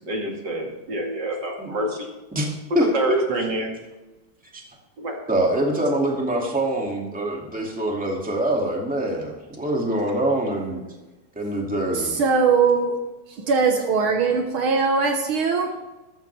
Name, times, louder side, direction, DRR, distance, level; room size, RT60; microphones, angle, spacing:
voice 1, 0.0-2.1 2.9-3.8 5.0-5.2, right 1 dB, 55° right, 0 dB, 2.8 m, -27 dB
voice 2, 2.7-3.2 4.5-4.6 5.3-10.8 11.4-12.2, right 1 dB, 5° right, -1 dB, 2.2 m, -24 dB
voice 3, 11.9-13.0 13.4-15.7, right 5 dB, 70° right, 3 dB, 2.0 m, -20 dB
14.0 x 13.5 x 3.4 m, 1.1 s
omnidirectional pair, 2.4 m